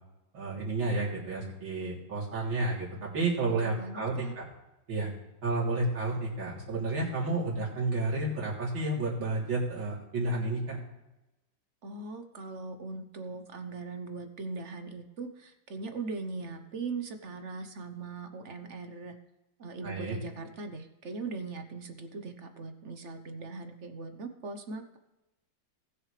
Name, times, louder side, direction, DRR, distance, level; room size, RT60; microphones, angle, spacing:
voice 1, 0.3-2.9 3.1-4.5 4.9-5.1 5.4-10.8 19.8-20.2, right 2 dB, 75° right, -5 dB, 4.1 m, -31 dB
voice 2, 3.6-4.3 11.8-19.2 19.6-25.0, right 3 dB, 45° right, 7 dB, 1.1 m, -40 dB
19.5 x 7.0 x 3.3 m, 0.98 s
omnidirectional pair, 2.1 m